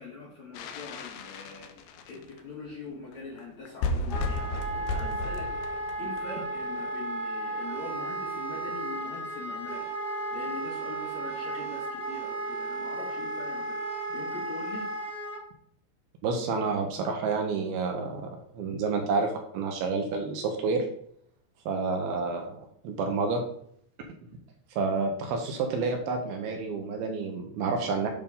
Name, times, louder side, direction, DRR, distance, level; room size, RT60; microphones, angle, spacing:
voice 1, 0.0-13.8 14.1-14.9, left 3 dB, 65° left, -3 dB, 1.8 m, -42 dB
sound 1, 0.5-2.4 3.1-3.2 3.4-3.5 3.7-6.8, left 2 dB, 80° left, 2.1 m, -34 dB
Wind instrument woodwind instrument, 4.1-15.4, right 2 dB, 20° left, 1.4 m, -34 dB
voice 2, 16.2-20.9 21.7-23.4 24.7-28.1, right 4 dB, 75° right, 3 dB, 2.6 m, -29 dB
9.0 x 3.7 x 5.4 m, 0.66 s
omnidirectional pair, 4.9 m